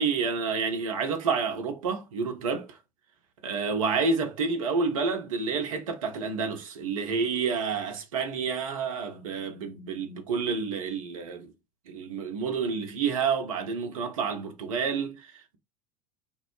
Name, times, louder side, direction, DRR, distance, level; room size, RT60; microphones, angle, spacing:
voice 1, 0.0-2.8 3.4-11.5 11.9-15.6, right 5 dB, 65° right, 0.8 m, -29 dB
3.6 x 2.0 x 2.9 m
figure-of-eight pair, 75°, 18 cm